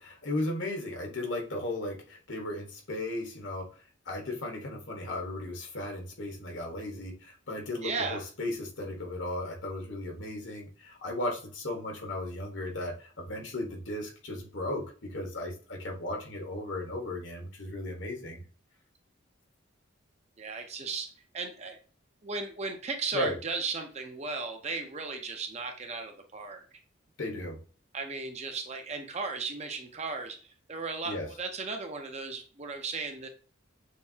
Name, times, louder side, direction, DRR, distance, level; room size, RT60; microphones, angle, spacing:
voice 1, 0.0-18.4 23.1-23.4 27.2-27.6 31.0-31.3, left 1 dB, 70° left, 1 dB, 1.4 m, -36 dB
voice 2, 7.8-8.2 20.4-21.8 22.2-26.7 27.9-30.4 30.7-33.3, right 4 dB, 35° right, 5 dB, 0.6 m, -36 dB
6.6 x 2.7 x 2.7 m, 0.38 s
head